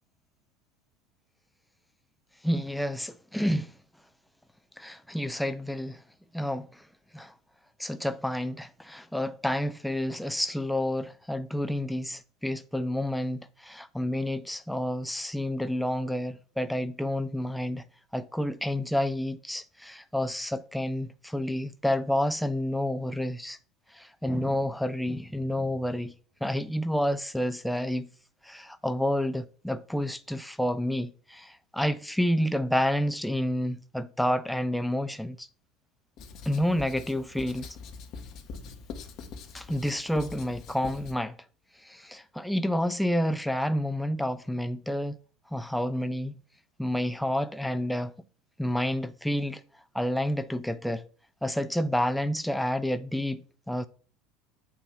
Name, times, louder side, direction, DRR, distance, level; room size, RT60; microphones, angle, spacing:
voice 1, 2.4-3.7 4.8-6.0 6.3-6.9 7.1-7.3 7.8-17.9 18.1-23.6 23.9-26.1 26.4-28.1 28.4-35.5 36.5-37.8 39.5-41.3 41.8-45.2 45.5-46.4 46.8-48.1 48.6-49.6 49.9-51.0 51.4-53.9, left 1 dB, 5° left, 0.5 m, -29 dB
Writing, 36.2-41.2, left 5 dB, 55° left, 1.1 m, -43 dB
7.8 x 2.8 x 6.0 m
hypercardioid pair, 75°, 0 cm